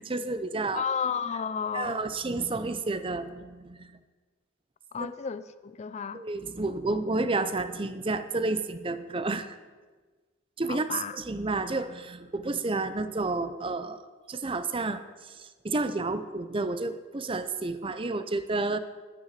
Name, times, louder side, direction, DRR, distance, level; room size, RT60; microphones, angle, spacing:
voice 1, 0.0-0.8 1.7-3.9 5.0-5.1 6.1-9.6 10.6-14.0 14.3-18.8, right 3 dB, 25° right, 0.6 m, -31 dB
voice 2, 0.7-2.0 4.9-6.2 10.7-11.2, left 6 dB, 35° left, 0.3 m, -32 dB
10.0 x 9.5 x 6.6 m
head